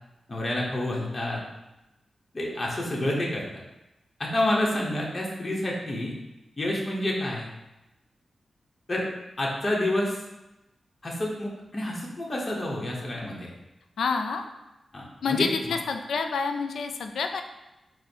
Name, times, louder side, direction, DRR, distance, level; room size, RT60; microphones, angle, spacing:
voice 1, 0.3-1.4 2.3-3.6 4.2-6.1 6.6-7.5 8.9-9.1 9.4-10.2 11.0-13.5 14.9-15.7, left 1 dB, 35° left, -3 dB, 1.0 m, -28 dB
voice 2, 14.0-14.4 15.2-17.4, left 5 dB, 90° left, 6 dB, 0.3 m, -28 dB
5.0 x 2.1 x 4.4 m, 0.95 s
cardioid pair, 65°, 0 cm